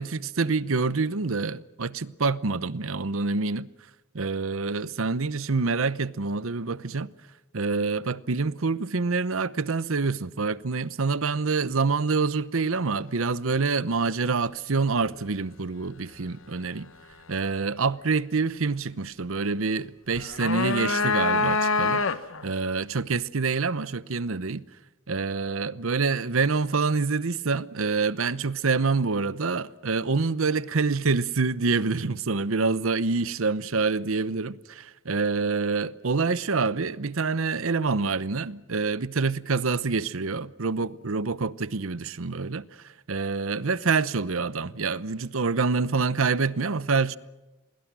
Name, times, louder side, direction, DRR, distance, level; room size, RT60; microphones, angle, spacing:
voice 1, 0.0-3.7 4.1-7.1 7.5-16.9 17.3-22.0 22.4-24.6 25.1-42.7 43.1-47.2, right 4 dB, 70° right, 0.8 m, -26 dB
sound 1, 20.1-22.5, left 3 dB, 65° left, 1.1 m, -25 dB
28.5 x 21.5 x 6.2 m
head